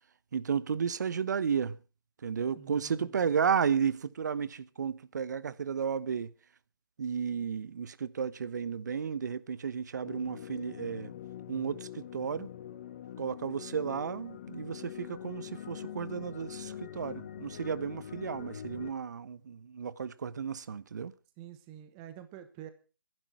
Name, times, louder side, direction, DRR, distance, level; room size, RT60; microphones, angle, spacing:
voice 1, 0.3-1.8 2.2-6.3 7.0-11.1 11.5-12.5 13.2-21.1, right 7 dB, 50° right, 1.1 m, -33 dB
voice 2, 2.5-3.1 21.4-22.7, right 11 dB, 15° right, 1.1 m, -48 dB
sound 1, 10.0-18.9, left 10 dB, 35° left, 0.9 m, -44 dB
22.5 x 11.0 x 4.4 m
hypercardioid pair, 160°, 12 cm